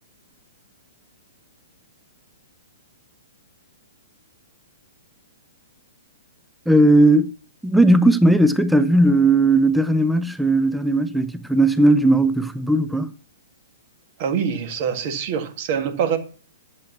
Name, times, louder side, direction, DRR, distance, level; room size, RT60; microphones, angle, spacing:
voice 1, 6.7-7.3 7.6-13.1, right 1 dB, ahead, 0.7 m, -17 dB
voice 2, 14.2-16.2, right 7 dB, 40° right, 1.9 m, -24 dB
11.5 x 7.9 x 5.6 m
figure-of-eight pair, 115°, 0 cm